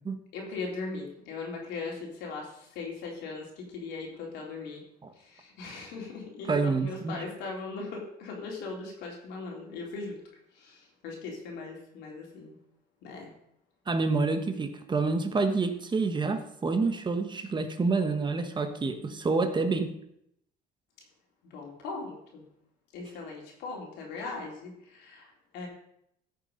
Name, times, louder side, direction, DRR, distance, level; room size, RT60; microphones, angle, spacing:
voice 1, 0.3-4.8 5.2-10.2 10.5-12.6 13.0-13.3 21.5-22.4 22.9-25.7, left 3 dB, 90° left, -1 dB, 3.7 m, -39 dB
voice 2, 6.5-7.2 13.9-19.9, right 4 dB, 25° right, 8 dB, 1.3 m, -28 dB
14.0 x 6.8 x 5.2 m, 0.74 s
cardioid pair, 110°, 17 cm